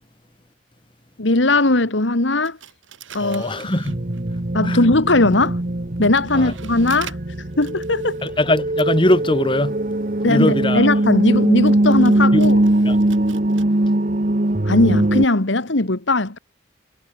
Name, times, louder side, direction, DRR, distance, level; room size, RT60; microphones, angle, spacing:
voice 1, 1.2-2.6 3.1-3.6 4.5-5.6 6.0-7.2 7.6-8.2 10.2-12.6 14.7-16.4, left 2 dB, 75° left, 2.0 m, -18 dB
sound 1, 2.4-4.5 5.1-13.6, right 7 dB, 90° right, 6.6 m, -44 dB
voice 2, 3.2-4.0 4.6-4.8 6.3-6.5 8.2-9.8 10.3-10.8 12.3-12.4 12.8-13.0, left 1 dB, 25° left, 3.1 m, -21 dB
sound 2, 3.9-15.3, right 1 dB, 45° right, 1.2 m, -20 dB
head